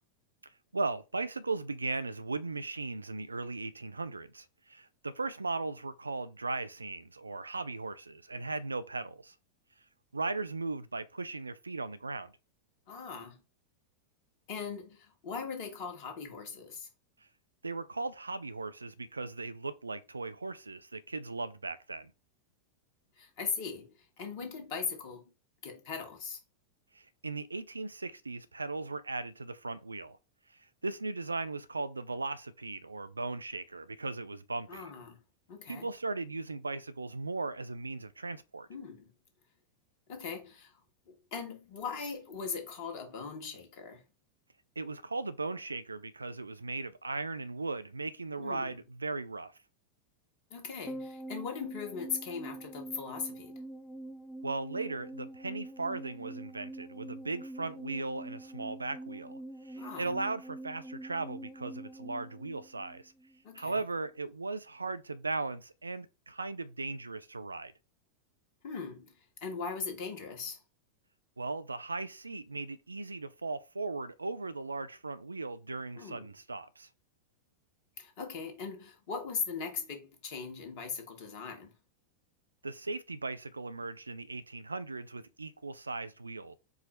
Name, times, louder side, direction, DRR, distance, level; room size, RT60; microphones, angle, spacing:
voice 1, 0.7-9.3 10.1-12.3 17.6-22.1 26.9-30.2 30.8-34.9 35.7-38.7 44.8-49.5 54.4-63.1 63.5-67.7 71.4-76.9 82.6-86.6, right 3 dB, 80° right, 0.3 m, -37 dB
voice 2, 12.9-13.4 14.5-16.9 23.2-25.3 25.6-26.4 34.7-35.2 35.5-35.9 38.7-39.1 40.1-40.8 41.1-44.0 48.4-48.8 50.5-53.6 59.8-60.2 63.4-63.8 68.6-70.6 76.0-76.3 78.0-81.7, left 5 dB, 50° left, 1.3 m, -40 dB
sound 1, 50.9-63.4 63.6-63.7, right 1 dB, 5° left, 0.4 m, -45 dB
4.6 x 2.0 x 4.3 m
figure-of-eight pair, 90°, 0 cm